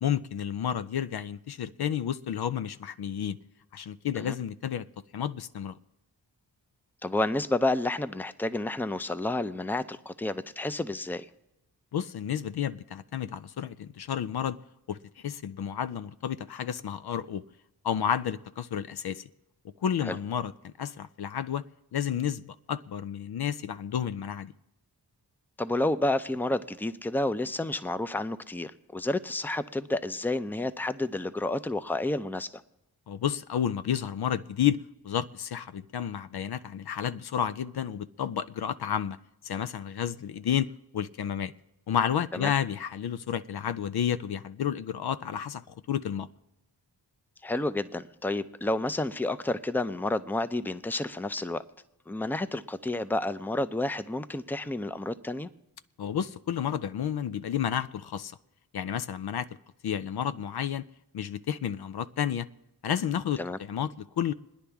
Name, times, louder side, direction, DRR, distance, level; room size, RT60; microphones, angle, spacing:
voice 1, 0.0-3.4 3.7-4.9 5.1-5.8 11.9-14.6 14.9-17.4 17.8-19.2 19.8-21.6 21.9-24.5 33.1-39.2 39.4-41.5 41.9-46.3 56.0-58.4 58.7-59.5 59.8-60.8 61.1-62.5 62.8-64.3, left 9 dB, 65° left, 0.5 m, -31 dB
voice 2, 7.0-11.3 20.0-20.2 25.6-32.6 42.3-42.5 47.4-51.6 52.1-55.5 63.4-63.6, left 2 dB, 5° left, 0.5 m, -30 dB
28.0 x 9.9 x 3.5 m
cardioid pair, 50°, 41 cm